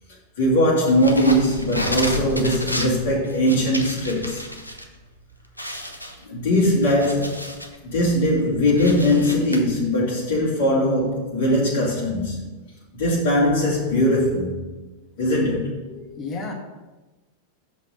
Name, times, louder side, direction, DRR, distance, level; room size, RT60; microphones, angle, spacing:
voice 1, 0.4-4.4 6.3-7.4 7.8-12.4 12.9-14.6 15.2-15.7, left 1 dB, 55° left, 2.6 m, -20 dB
sound 1, 0.9-4.8 5.2-5.3 5.6-7.8 8.2-9.6, equal, 90° left, 0.7 m, -31 dB
voice 2, 15.9-16.5, left 3 dB, 30° left, 1.4 m, -32 dB
6.0 x 5.3 x 6.5 m
figure-of-eight pair, 90°, 0 cm